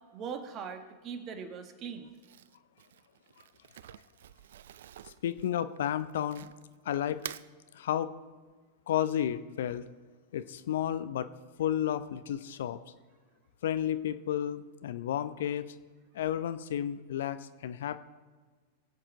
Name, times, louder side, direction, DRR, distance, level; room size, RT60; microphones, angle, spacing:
voice 1, 0.1-2.1, right 6 dB, 35° right, 7 dB, 1.7 m, -40 dB
Crumpling crinkling, 2.1-6.7 7.1-7.5, right 11 dB, 65° right, 0.4 m, -47 dB
voice 2, 5.0-6.5 6.8-7.2 7.7-8.1 8.9-9.8 10.3-11.3 11.6-12.8 13.6-15.7 16.1-18.0, left 10 dB, 65° left, 13 dB, 0.7 m, -32 dB
21.0 x 8.9 x 4.0 m, 1.4 s
figure-of-eight pair, 95°, 0 cm